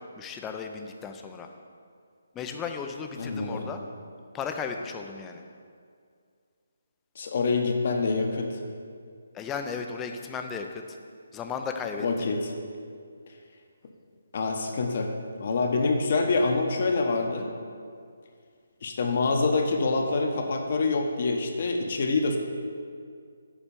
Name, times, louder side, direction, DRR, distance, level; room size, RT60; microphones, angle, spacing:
voice 1, 0.0-1.5 2.3-3.8 4.3-5.4 9.3-11.0 11.3-12.3, left 5 dB, 10° left, 4 dB, 0.5 m, -35 dB
voice 2, 3.2-3.7 7.2-8.6 12.0-12.4 14.3-15.1 15.4-17.5 18.8-22.4, left 3 dB, 50° left, 3 dB, 1.0 m, -26 dB
7.3 x 4.4 x 6.8 m, 2.2 s
figure-of-eight pair, 155°, 0 cm